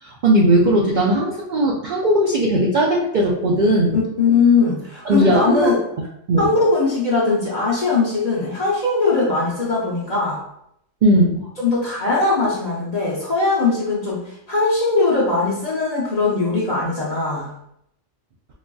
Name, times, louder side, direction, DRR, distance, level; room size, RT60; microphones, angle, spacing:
voice 1, 0.0-4.0 5.1-5.8 6.3-6.5 11.0-11.5, right 1 dB, 65° right, -2 dB, 0.4 m, -18 dB
voice 2, 4.2-5.8 6.4-10.4 11.6-14.2 14.5-17.5, left 3 dB, 40° left, -5 dB, 0.6 m, -20 dB
3.9 x 2.5 x 2.3 m, 0.75 s
omnidirectional pair, 1.3 m